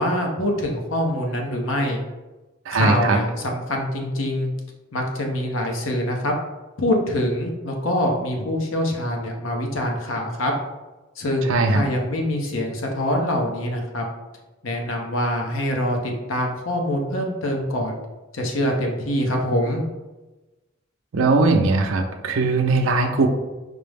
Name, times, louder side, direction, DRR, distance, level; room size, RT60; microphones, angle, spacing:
voice 1, 0.0-2.0 2.7-4.5 4.9-6.3 6.8-10.5 11.2-14.0 14.6-18.0 18.3-19.8, left 1 dB, 90° left, 1 dB, 0.8 m, -24 dB
voice 2, 2.7-3.2 11.5-11.9 21.1-23.3, right 3 dB, 85° right, 4 dB, 0.5 m, -19 dB
5.1 x 2.0 x 3.3 m, 1.1 s
head